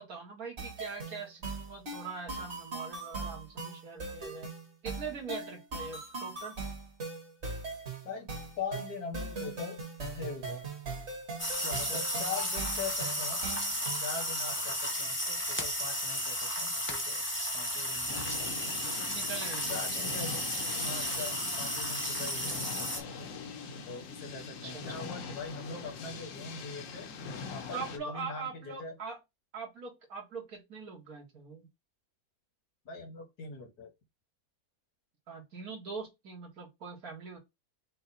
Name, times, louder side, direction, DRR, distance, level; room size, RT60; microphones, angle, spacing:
voice 1, 0.0-4.5 4.8-6.6 11.6-12.2 19.1-20.3 24.4-24.8 27.7-29.2 29.5-31.7 35.3-37.4, right 5 dB, 70° right, 2.1 m, -42 dB
sound 1, 0.6-14.2, right 3 dB, 45° right, 1.9 m, -40 dB
voice 2, 8.6-9.8 10.1-10.6 11.6-13.4 14.0-17.2 17.5-19.0 19.7-20.4 20.8-23.3 23.9-27.1 27.5-29.0 32.9-33.9, left 5 dB, 85° left, 2.1 m, -42 dB
sound 2, 11.4-23.0, equal, 10° left, 0.9 m, -33 dB
sound 3, 18.1-28.0, left 5 dB, 60° left, 1.0 m, -42 dB
5.4 x 2.3 x 4.1 m
omnidirectional pair, 1.6 m